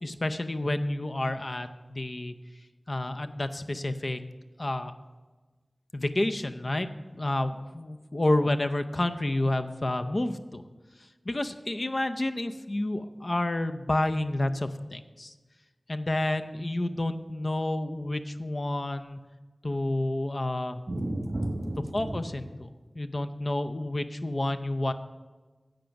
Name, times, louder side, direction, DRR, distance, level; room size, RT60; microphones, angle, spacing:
voice 1, 0.0-2.3 2.9-4.2 4.6-4.9 5.9-6.9 7.2-10.6 11.3-15.3 15.9-19.2 19.6-20.8 21.9-22.7 22.9-24.9, left 1 dB, 50° left, 9 dB, 0.6 m, -29 dB
voice 2, 20.9-22.3, right 1 dB, 45° right, 3 dB, 1.4 m, -32 dB
10.5 x 7.4 x 5.9 m, 1.3 s
wide cardioid pair, 70°, 0 cm